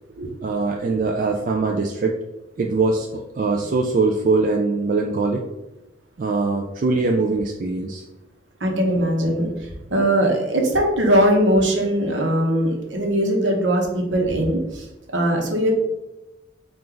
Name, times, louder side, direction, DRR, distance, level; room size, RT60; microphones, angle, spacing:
voice 1, 0.4-2.2 2.6-5.4 6.2-8.0, right 3 dB, 45° right, 1 dB, 0.3 m, -22 dB
voice 2, 8.6-14.8 15.1-15.7, right 1 dB, 75° right, 1 dB, 1.0 m, -20 dB
4.5 x 2.5 x 3.8 m, 0.96 s
head